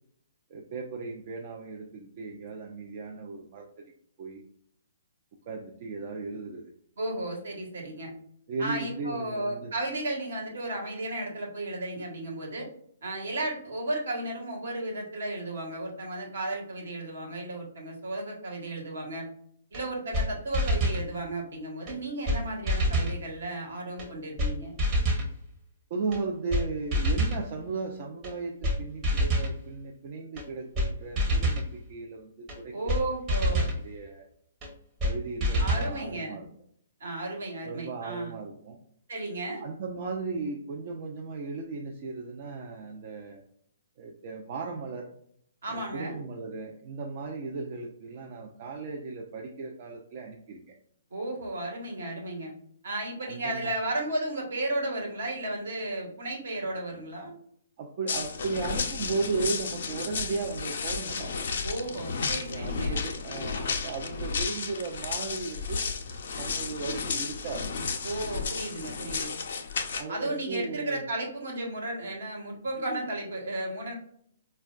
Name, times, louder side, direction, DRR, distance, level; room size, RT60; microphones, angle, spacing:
voice 1, 0.5-3.7 4.2-4.4 5.5-6.7 8.5-9.7 25.9-33.1 33.5-34.3 35.0-36.5 37.6-38.8 39.6-43.4 44.0-45.1 45.7-50.6 53.2-53.7 57.8-61.6 62.3-65.8 66.3-67.7 69.8-71.0, right 4 dB, 45° right, 0 dB, 0.5 m, -36 dB
voice 2, 7.0-8.1 8.6-12.7 13.0-19.3 19.7-24.7 32.7-33.7 35.6-36.4 37.0-38.3 39.1-39.6 45.6-46.2 51.1-52.5 52.8-57.4 61.6-63.0 68.0-69.3 70.1-73.9, right 1 dB, 70° right, 0 dB, 1.2 m, -34 dB
sound 1, 19.7-19.8 20.1-20.3 20.5-21.0 21.9-22.0 22.3-22.4 22.7-23.2 24.0-24.1 24.4-24.5 24.8-25.3 26.1-26.2 26.5-26.6 26.9-27.4 28.2-28.3 28.6-28.8 29.0-29.5 30.4-30.5 30.7-30.9 31.2-31.6 32.5-32.6 32.9-33.0 33.3-33.8 34.6-34.7 35.0-35.1 35.4-35.9, equal, 30° right, 0.9 m, -26 dB
sound 2, 58.1-70.0, left 4 dB, 60° left, 0.5 m, -33 dB
4.2 x 2.2 x 2.4 m, 0.66 s
figure-of-eight pair, 130°, 0 cm